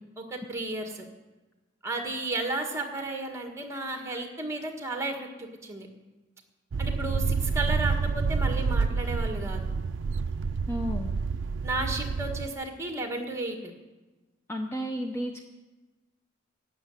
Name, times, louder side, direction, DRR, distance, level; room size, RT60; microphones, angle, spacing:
voice 1, 0.2-1.0 1.8-5.9 6.8-9.6 11.6-13.6, right 2 dB, 15° right, 3 dB, 1.6 m, -33 dB
sound 1, 6.7-12.5, right 4 dB, 65° right, 0.4 m, -28 dB
voice 2, 10.7-11.1 14.5-15.4, equal, 15° left, 3 dB, 0.7 m, -32 dB
12.0 x 7.7 x 9.0 m, 1.2 s
head